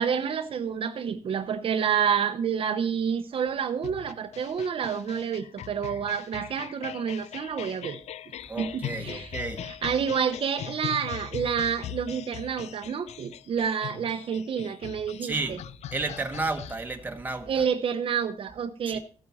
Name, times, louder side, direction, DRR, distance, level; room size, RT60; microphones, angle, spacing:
voice 1, 0.0-8.0 8.6-9.3 9.6-15.6 17.5-19.0, right 7 dB, 55° right, 0.9 m, -29 dB
sound 1, 3.8-16.7, left 11 dB, 75° left, 0.5 m, -40 dB
voice 2, 8.5-9.7 15.2-15.6 15.9-17.5 18.9-19.0, right 3 dB, 15° right, 1.3 m, -32 dB
15.0 x 8.7 x 4.2 m
wide cardioid pair, 155°, 11 cm